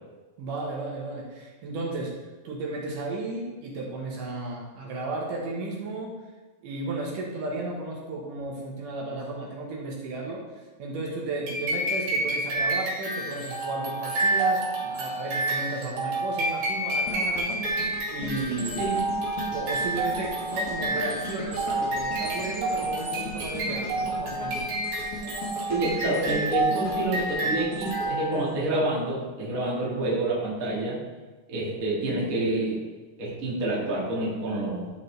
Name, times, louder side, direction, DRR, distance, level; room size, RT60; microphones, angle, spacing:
voice 1, 0.4-2.1 2.4-6.1 6.6-17.6 18.1-18.9 19.5-24.7, right 2 dB, 65° right, -3 dB, 2.7 m, -34 dB
sound 1, 11.5-28.5, right 2 dB, 90° right, 4.1 m, -29 dB
sound 2, 17.1-29.2 29.7-29.8, left 1 dB, 40° left, 1.5 m, -38 dB
voice 2, 25.7-31.0 31.5-32.8 33.2-34.9, right 2 dB, 30° right, -5 dB, 1.6 m, -28 dB
12.0 x 5.3 x 3.3 m, 1.3 s
omnidirectional pair, 4.2 m